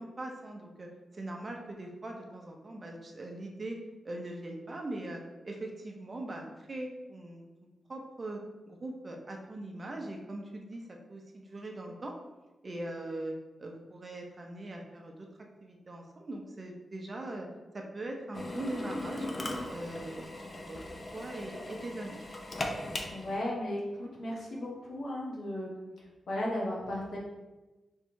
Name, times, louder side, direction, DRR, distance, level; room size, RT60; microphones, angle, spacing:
voice 1, 0.0-3.8 4.0-7.5 7.9-12.1 12.6-15.3 15.6-17.5 17.7-19.3 19.7-20.8 21.1-22.2, right 1 dB, 35° right, 1 dB, 0.7 m, -41 dB
Drill, 18.3-23.4, left 1 dB, 30° left, 0.5 m, -38 dB
voice 2, 23.1-25.7 26.3-27.2, left 1 dB, 75° left, -4 dB, 1.3 m, -35 dB
3.6 x 3.2 x 4.6 m, 1.1 s
wide cardioid pair, 125°, 0 cm